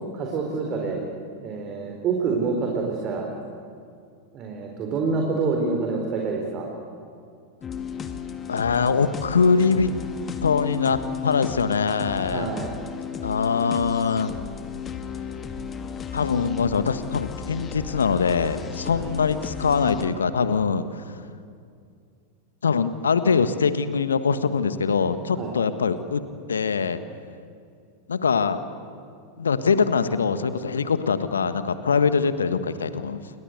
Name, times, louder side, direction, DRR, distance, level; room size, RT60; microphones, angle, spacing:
voice 1, 0.1-1.0 1.4-3.3 4.3-6.7 12.3-12.7 18.9-19.1 25.4-25.5, right 4 dB, 35° right, 1 dB, 4.3 m, -27 dB
sound 1, 7.6-20.1, left 7 dB, 25° left, 1.9 m, -34 dB
voice 2, 8.5-9.9 10.4-12.5 13.2-14.3 16.1-21.0 22.6-26.2 26.5-27.0 28.1-28.6 29.4-33.2, left 5 dB, 75° left, 12 dB, 1.4 m, -23 dB
29.0 x 22.5 x 8.0 m, 2.3 s
figure-of-eight pair, 90°, 0 cm